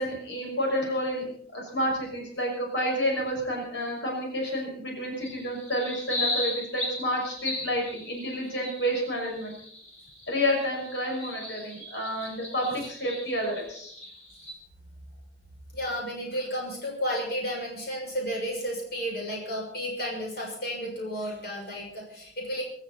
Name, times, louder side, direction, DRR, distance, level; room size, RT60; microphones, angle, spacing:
voice 1, 0.0-9.5 10.3-13.9, equal, 80° left, 0 dB, 6.2 m, -30 dB
sound 1, 5.2-14.5, left 2 dB, 40° left, 4.5 m, -37 dB
voice 2, 15.7-22.6, equal, 60° left, -1 dB, 6.4 m, -32 dB
25.0 x 13.0 x 4.2 m, 0.64 s
head